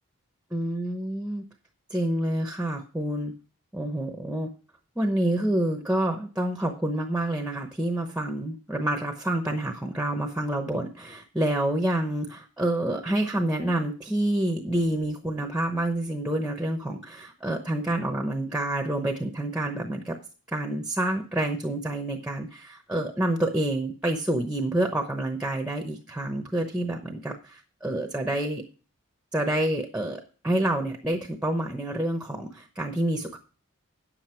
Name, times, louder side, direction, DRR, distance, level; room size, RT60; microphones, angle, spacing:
voice 1, 0.5-1.4 1.9-3.3 3.7-4.5 5.0-20.1 20.5-28.6 29.3-33.4, right 1 dB, 5° right, 3 dB, 0.8 m, -28 dB
9.9 x 7.8 x 4.4 m, 0.37 s
head